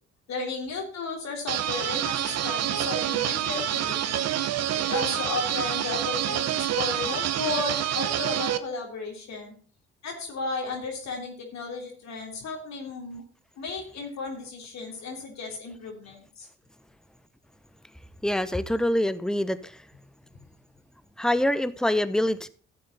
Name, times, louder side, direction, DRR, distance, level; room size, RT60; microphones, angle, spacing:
voice 1, 0.3-4.2 4.9-9.5 10.0-13.2 13.6-16.5, left 4 dB, 60° left, 2 dB, 3.5 m, -34 dB
sound 1, 1.5-8.6, right 11 dB, 55° right, 0.9 m, -27 dB
voice 2, 18.2-19.6 21.2-22.5, left 1 dB, ahead, 14 dB, 1.0 m, -25 dB
13.5 x 7.8 x 4.1 m, 0.43 s
hypercardioid pair, 45°, 31 cm